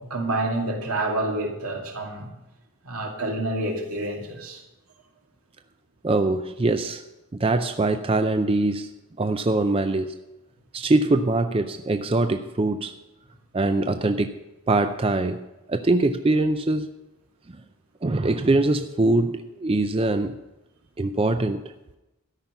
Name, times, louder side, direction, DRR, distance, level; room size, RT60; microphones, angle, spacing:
voice 1, 0.1-2.3 2.8-4.6, right 2 dB, 80° right, 1 dB, 2.5 m, -28 dB
voice 2, 6.0-7.0 7.3-8.9 9.2-10.1 10.7-12.9 13.5-14.3 14.7-15.4 15.7-16.9 18.0-20.4 21.0-21.6, right 2 dB, 25° right, 8 dB, 0.4 m, -23 dB
13.0 x 5.6 x 9.5 m, 0.98 s
head